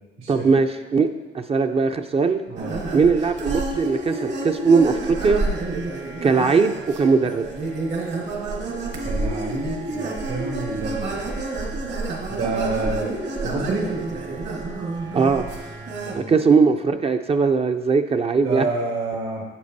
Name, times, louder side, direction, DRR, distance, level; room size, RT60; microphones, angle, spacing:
voice 1, 0.3-1.1 1.3-2.4 2.9-5.5 6.2-7.5 15.1-15.5 16.1-18.7, right 4 dB, 30° right, 7 dB, 0.4 m, -19 dB
voice 2, 2.5-2.8 9.0-11.2 12.3-13.1 13.4-13.9 16.0-16.3 18.4-19.4, right 3 dB, 85° right, -1 dB, 2.0 m, -28 dB
sound 1, 2.6-16.1, right 2 dB, 65° right, 1.5 m, -29 dB
8.5 x 6.9 x 2.6 m, 1.2 s
cardioid pair, 90°, 20 cm